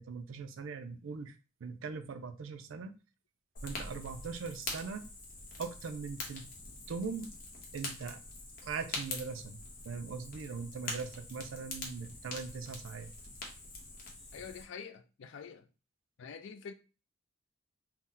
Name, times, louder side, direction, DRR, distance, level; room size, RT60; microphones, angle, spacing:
voice 1, 0.0-1.3 1.6-2.9 3.6-5.1 5.6-6.5 6.9-7.3 7.7-8.2 8.6-9.6 9.9-13.1, right 5 dB, 75° right, 0.4 m, -40 dB
Fire, 3.6-14.6, left 2 dB, 45° left, 0.8 m, -44 dB
voice 2, 14.3-15.7 16.2-16.7, left 6 dB, 65° left, 0.4 m, -46 dB
2.7 x 2.1 x 3.7 m
head